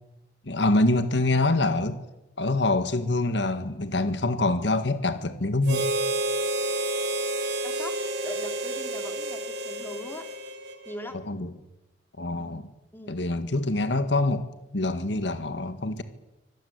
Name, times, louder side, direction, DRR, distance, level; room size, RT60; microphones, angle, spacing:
voice 1, 0.4-2.0 2.4-5.9 11.3-11.5 12.2-12.7 13.1-14.4 14.7-16.0, left 2 dB, 70° left, 11 dB, 1.7 m, -25 dB
Harmonica, 5.6-11.1, right 1 dB, 65° right, 3.1 m, -30 dB
voice 2, 7.6-8.0 8.2-10.2 10.8-11.2 12.9-13.2, left 1 dB, 10° left, 6 dB, 3.1 m, -40 dB
25.5 x 17.5 x 9.6 m, 0.96 s
head